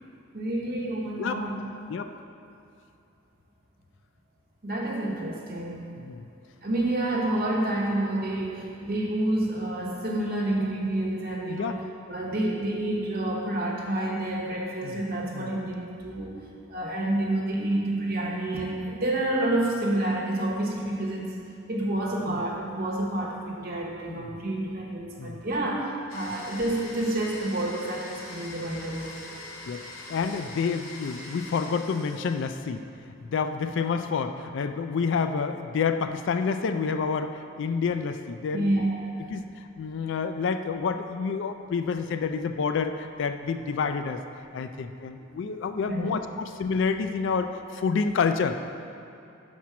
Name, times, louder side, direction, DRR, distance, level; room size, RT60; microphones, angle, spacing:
voice 1, 0.3-1.6 4.6-5.8 6.6-11.8 12.1-21.3 21.7-29.2 38.5-39.3 45.9-46.1, right 1 dB, 50° right, -2 dB, 1.1 m, -29 dB
voice 2, 6.0-6.3 11.4-11.8 14.8-15.0 15.3-15.5 22.3-22.4 24.1-24.3 25.2-25.4 29.7-29.8 30.1-32.8 33.2-38.8 39.3-44.2 44.5-48.6, left 5 dB, 60° left, 8 dB, 0.3 m, -28 dB
Domestic sounds home sounds, 26.1-32.7, left 2 dB, 85° left, 1.0 m, -43 dB
6.1 x 4.4 x 5.8 m, 2.8 s
head